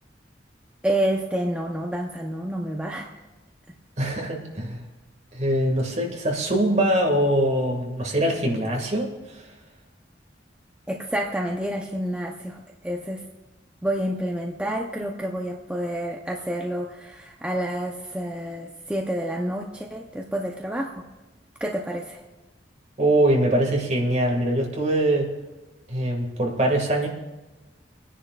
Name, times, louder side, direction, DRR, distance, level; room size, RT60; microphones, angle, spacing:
voice 1, 0.8-3.1 10.9-13.2 13.8-21.1 21.6-22.2, right 1 dB, 5° right, 0 dB, 0.6 m, -29 dB
voice 2, 4.0-4.8 5.3-9.4 23.0-25.3 25.9-27.1, right 1 dB, 40° right, 1 dB, 1.9 m, -23 dB
29.0 x 10.0 x 2.4 m, 1.1 s
head